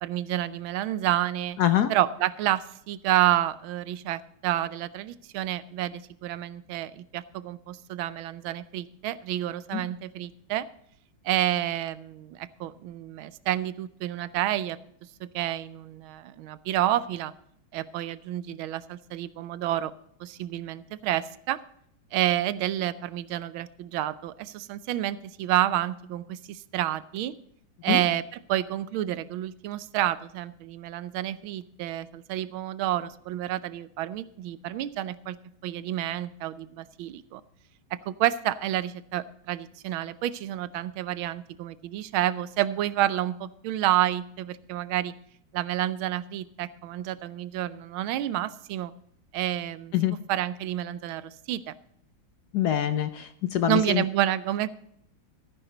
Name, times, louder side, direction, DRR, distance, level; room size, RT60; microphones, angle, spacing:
voice 1, 0.0-1.6 1.9-10.7 11.2-14.8 15.2-17.3 17.7-19.9 20.2-21.6 22.1-27.3 27.8-28.2 28.5-35.4 35.6-37.4 37.9-45.1 45.5-48.9 49.3-51.7 53.7-54.7, right 13 dB, 85° right, 15 dB, 1.5 m, -29 dB
voice 2, 1.6-1.9 9.7-9.8 27.9-28.0 49.9-50.2 52.5-54.0, left 11 dB, 70° left, 10 dB, 1.0 m, -25 dB
13.5 x 10.0 x 3.8 m, 0.70 s
omnidirectional pair, 2.2 m